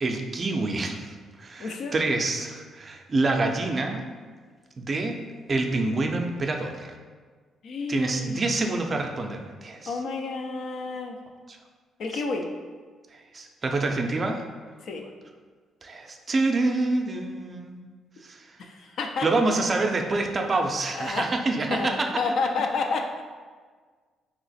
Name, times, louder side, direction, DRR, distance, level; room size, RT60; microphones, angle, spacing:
voice 1, 0.0-4.0 4.8-5.2 5.5-6.9 7.9-9.9 11.5-11.6 12.1-12.2 13.3-14.4 15.8-17.8 18.2-18.5 19.2-22.1, right 2 dB, 35° right, 3 dB, 0.4 m, -27 dB
voice 2, 1.6-1.9 7.6-8.5 9.8-11.2 12.0-12.5 14.8-15.1 18.6-19.3 20.9-21.3 21.7-23.2, left 4 dB, 65° left, 4 dB, 0.4 m, -30 dB
3.0 x 2.9 x 4.1 m, 1.5 s
cardioid pair, 90°, 0 cm